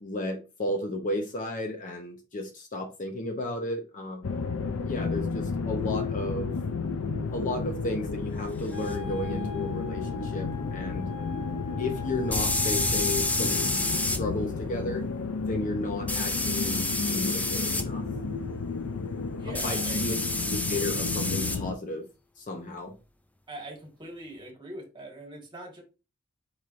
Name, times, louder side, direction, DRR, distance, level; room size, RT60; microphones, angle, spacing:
voice 1, 0.0-4.3 4.8-6.5 7.3-11.1 11.8-13.8 14.1-15.1 15.4-18.0 19.6-20.1 20.4-22.0 22.4-22.9, left 1 dB, 40° left, 0.7 m, -33 dB
sound 1, 4.2-21.7, left 4 dB, 65° left, 0.5 m, -32 dB
Wind instrument woodwind instrument, 8.7-14.1, left 8 dB, 85° left, 1.2 m, -44 dB
sound 2, 8.9-9.0 12.3-14.2 16.1-17.9 19.6-21.6, left 2 dB, 5° left, 0.3 m, -29 dB
voice 2, 19.4-20.0 23.5-25.8, right 1 dB, 20° right, 1.5 m, -42 dB
4.8 x 4.4 x 2.5 m
head